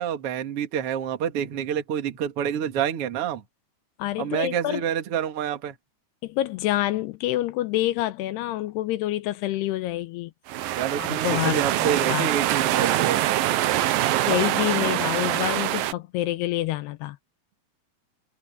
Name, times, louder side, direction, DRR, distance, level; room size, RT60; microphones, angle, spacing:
voice 1, 0.0-3.4 4.2-5.8 10.8-13.2, right 9 dB, 45° right, 2.2 m, -28 dB
voice 2, 4.0-4.8 6.2-10.3 11.0-11.6 12.1-12.3 14.3-17.2, left 15 dB, 85° left, 2.7 m, -27 dB
sound 1, 10.5-15.9, right 14 dB, 70° right, 2.3 m, -24 dB
omnidirectional pair, 4.9 m